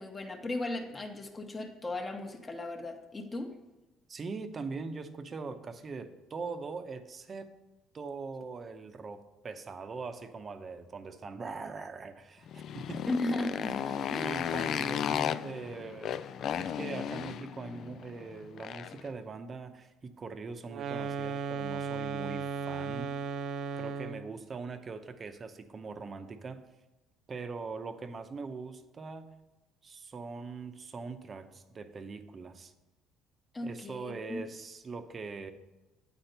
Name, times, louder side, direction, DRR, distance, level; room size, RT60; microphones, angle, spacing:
voice 1, 0.0-3.5 13.1-14.3 14.6-14.7 33.5-34.4, left 2 dB, 20° left, 3 dB, 1.0 m, -36 dB
voice 2, 4.1-7.5 7.9-13.0 14.2-23.1 23.8-26.6 27.3-29.3 29.8-32.7 33.6-35.5, right 4 dB, 35° right, 9 dB, 0.7 m, -42 dB
Motorcycle, 12.5-19.1, left 9 dB, 60° left, 0.3 m, -35 dB
sound 1, 20.7-24.3, right 6 dB, 60° right, 0.4 m, -35 dB
8.9 x 4.4 x 6.6 m, 1.1 s
cardioid pair, 95°, 0 cm